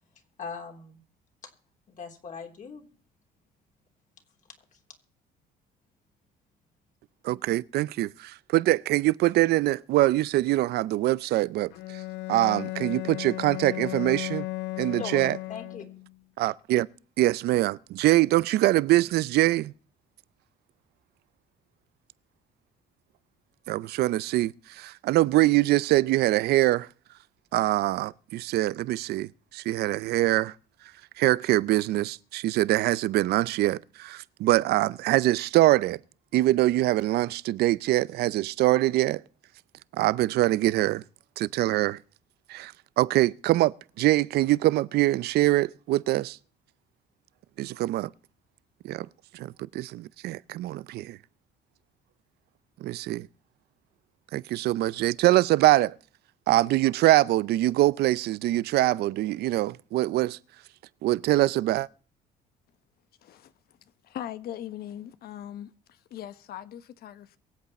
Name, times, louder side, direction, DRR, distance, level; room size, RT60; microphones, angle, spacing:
voice 1, 0.4-1.0 1.9-2.9 15.0-15.8, left 6 dB, 50° left, 3.4 m, -39 dB
voice 2, 7.2-11.7 12.3-14.4 14.8-15.4 16.4-16.9 17.2-19.7 23.7-26.9 27.5-30.5 31.2-36.0 36.3-39.2 40.0-41.0 41.4-42.0 42.5-46.4 47.6-48.1 48.8-49.1 49.3-51.2 52.8-53.3 54.3-55.9 56.5-60.4 61.0-61.9, right 16 dB, 70° right, 0.5 m, -24 dB
Bowed string instrument, 11.7-16.1, left 20 dB, 85° left, 0.5 m, -35 dB
voice 3, 64.1-67.4, left 11 dB, 65° left, 1.2 m, -40 dB
23.0 x 8.2 x 4.2 m
cardioid pair, 110°, 17 cm